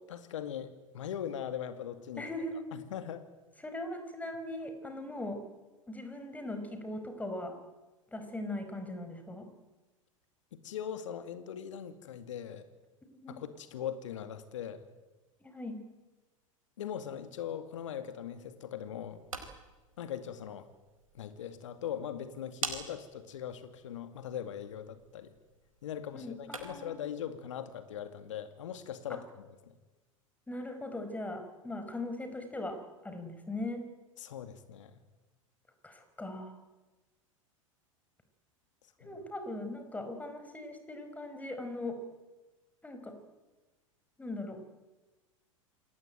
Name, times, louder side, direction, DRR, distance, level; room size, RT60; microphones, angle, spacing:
voice 1, 0.0-2.3 2.7-3.3 10.5-12.7 13.3-14.9 16.8-19.3 20.0-20.7 21.1-25.3 25.8-29.7 34.2-35.0 39.0-39.1, left 9 dB, 65° left, 10 dB, 2.2 m, -40 dB
voice 2, 2.2-2.7 3.6-5.4 5.9-7.6 8.1-9.5 13.0-13.4 15.4-15.8 26.1-26.9 29.1-29.2 30.5-33.9 35.8-36.5 39.0-42.0 42.8-43.2 44.2-44.6, left 1 dB, 10° left, 7 dB, 5.4 m, -40 dB
sound 1, 19.0-27.0, right 4 dB, 80° right, 4.6 m, -46 dB
28.0 x 20.0 x 9.2 m, 1.2 s
figure-of-eight pair, 90°, 17 cm